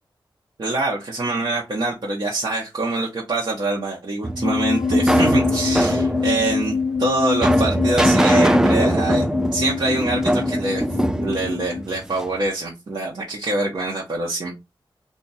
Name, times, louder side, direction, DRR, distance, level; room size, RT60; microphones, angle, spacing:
voice 1, 0.6-9.2 9.5-10.9 11.2-14.5, right 2 dB, 55° right, -3 dB, 1.0 m, -25 dB
sound 1, 4.2-12.4, right 1 dB, 5° right, 0.4 m, -21 dB
sound 2, 4.4-11.8, left 5 dB, 75° left, 0.4 m, -25 dB
2.9 x 2.4 x 4.1 m, 0.22 s
wide cardioid pair, 90°, 9 cm